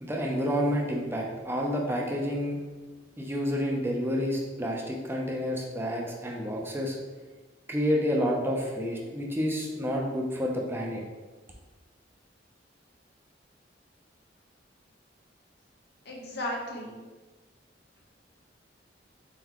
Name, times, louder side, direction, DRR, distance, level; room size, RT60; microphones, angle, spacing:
voice 1, 0.0-2.6 3.2-7.0 7.7-11.0, equal, 15° right, -1 dB, 0.6 m, -29 dB
voice 2, 16.0-17.0, left 1 dB, 60° left, -1 dB, 0.9 m, -35 dB
4.1 x 4.0 x 3.0 m, 1.3 s
head